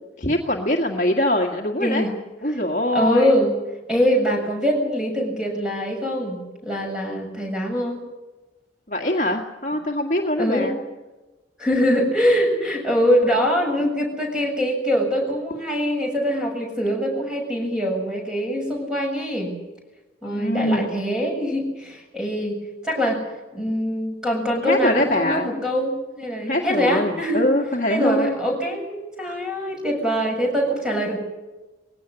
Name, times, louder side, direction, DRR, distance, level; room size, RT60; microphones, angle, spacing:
voice 1, 0.2-2.1 2.4-3.4 8.9-10.8 20.2-21.0 24.6-25.5 26.5-28.4, left 1 dB, 40° left, 1 dB, 2.0 m, -23 dB
voice 2, 1.8-2.2 2.5-2.6 2.9-3.6 3.9-8.0 10.4-10.7 11.6-19.5 20.2-23.2 23.5-27.4 27.9-31.2, equal, 5° right, 0 dB, 7.2 m, -23 dB
21.0 x 17.0 x 9.9 m, 1.1 s
head